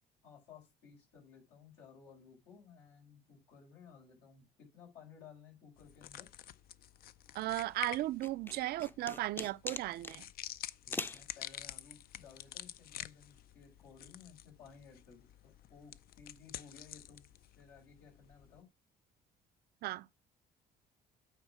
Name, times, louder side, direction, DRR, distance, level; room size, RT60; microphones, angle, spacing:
voice 1, 0.2-6.3 10.8-18.7, left 6 dB, 90° left, 4.8 m, -58 dB
sound 1, 5.8-18.6, left 12 dB, 65° left, 0.5 m, -49 dB
voice 2, 7.3-10.3 19.8-20.1, right 16 dB, 70° right, 0.4 m, -36 dB
sound 2, 8.2-10.2 10.9-11.2, left 2 dB, 10° left, 0.5 m, -41 dB
9.0 x 4.1 x 6.0 m
cardioid pair, 110°, 17 cm